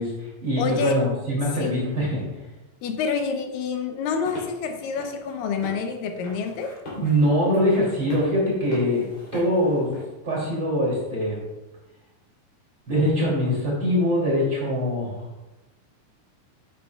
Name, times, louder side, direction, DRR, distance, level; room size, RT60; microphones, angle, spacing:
voice 1, 0.0-2.2 7.0-9.1 9.3-9.9 10.2-11.4 12.9-15.2, equal, 35° right, -5 dB, 3.1 m, -23 dB
voice 2, 0.6-1.0 1.6-1.8 2.8-6.7, left 5 dB, 85° left, 5 dB, 2.5 m, -27 dB
sound 1, 4.1-10.0, left 1 dB, 45° left, 3.9 m, -42 dB
9.8 x 8.6 x 2.3 m, 1.1 s
omnidirectional pair, 3.9 m